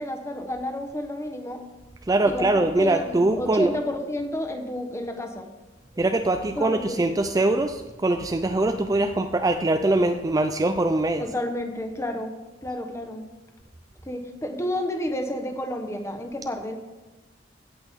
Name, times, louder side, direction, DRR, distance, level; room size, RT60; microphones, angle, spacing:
voice 1, 0.0-1.6 2.2-5.5 6.6-7.1 11.2-12.3 12.6-13.2 14.0-16.8, left 1 dB, 15° left, 4 dB, 1.1 m, -31 dB
voice 2, 2.1-3.7 6.0-11.3, right 2 dB, 20° right, 7 dB, 0.4 m, -23 dB
16.5 x 6.2 x 3.6 m, 1.2 s
head